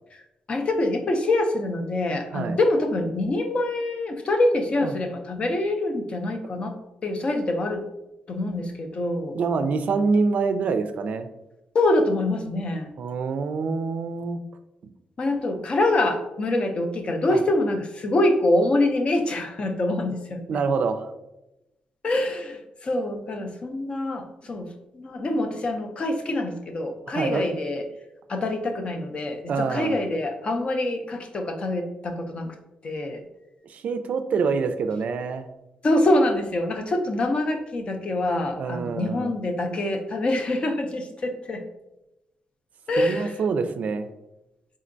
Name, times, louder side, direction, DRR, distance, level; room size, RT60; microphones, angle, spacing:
voice 1, 0.5-6.7 7.0-7.8 8.3-9.4 11.7-12.9 15.2-20.4 22.0-27.8 28.3-32.6 32.8-33.2 35.8-41.6 42.9-43.3, left 2 dB, 40° left, 6 dB, 0.5 m, -25 dB
voice 2, 9.3-11.3 13.0-14.4 17.3-17.4 20.5-21.1 27.1-27.4 29.5-30.0 33.6-35.5 38.6-39.3 43.0-44.1, right 4 dB, 60° right, 9 dB, 0.3 m, -26 dB
4.3 x 3.7 x 2.5 m, 0.94 s
cardioid pair, 130°, 3 cm